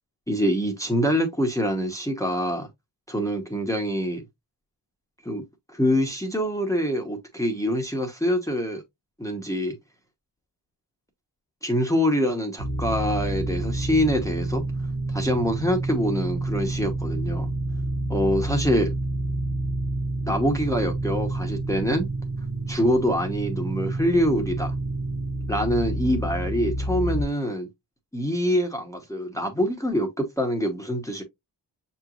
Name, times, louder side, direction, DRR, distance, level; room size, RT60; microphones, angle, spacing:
voice 1, 0.3-2.7 3.1-4.2 5.2-5.4 5.7-8.8 9.2-9.8 11.6-14.6 15.1-17.5 18.1-18.9 20.2-22.1 22.7-24.7 25.5-27.7 28.1-31.2, equal, 5° left, 1.0 m, -25 dB
sound 1, 12.6-27.2, right 2 dB, 65° right, 0.9 m, -29 dB
6.5 x 3.0 x 2.5 m
wide cardioid pair, 65°, 43 cm